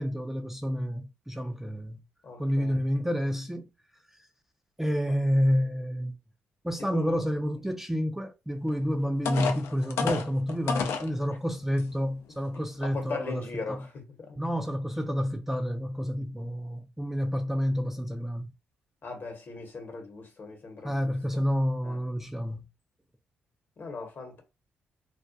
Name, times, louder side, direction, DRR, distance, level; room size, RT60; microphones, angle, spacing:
voice 1, 0.0-2.0 2.4-3.7 4.8-6.2 6.6-13.8 14.4-18.5 20.8-22.6, equal, 5° right, 0.4 m, -29 dB
voice 2, 2.2-2.8 6.8-7.2 12.8-14.4 19.0-21.4 21.8-22.0 23.8-24.4, left 4 dB, 50° left, 1.0 m, -39 dB
sound 1, 8.7-8.8 9.3-11.1 11.8-11.9 12.4-12.6, left 6 dB, 75° left, 0.4 m, -30 dB
2.3 x 2.1 x 2.6 m
supercardioid pair, 55°, 4 cm